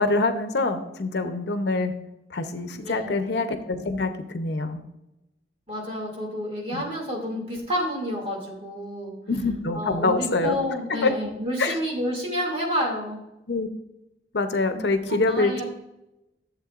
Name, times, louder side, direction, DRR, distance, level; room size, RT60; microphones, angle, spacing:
voice 1, 0.0-1.9 2.3-4.8 6.7-6.8 9.3-10.6 11.0-11.1 11.6-11.8 13.5-13.7 14.3-15.6, left 3 dB, 70° left, 8 dB, 0.7 m, -25 dB
voice 2, 2.8-3.3 5.7-9.1 9.7-13.2 14.7-15.6, equal, 35° right, -1 dB, 2.5 m, -29 dB
11.5 x 7.5 x 2.5 m, 0.91 s
head